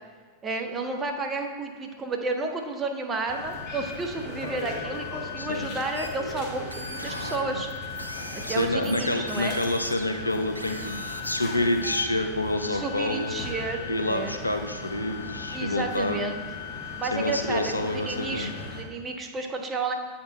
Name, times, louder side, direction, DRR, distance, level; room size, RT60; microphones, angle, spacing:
voice 1, 0.4-7.7 8.3-9.6 12.7-14.4 15.5-16.4 17.0-19.9, right 3 dB, 20° right, 3 dB, 0.9 m, -31 dB
sound 1, 3.3-18.8, left 4 dB, 40° left, 1.2 m, -37 dB
sound 2, 5.9-12.0, right 1 dB, 90° right, 0.5 m, -38 dB
voice 2, 8.5-13.4 13.9-16.2 17.1-18.5, left 1 dB, 85° left, 6 dB, 0.5 m, -28 dB
8.3 x 4.4 x 4.3 m, 1.5 s
figure-of-eight pair, 90°, 0 cm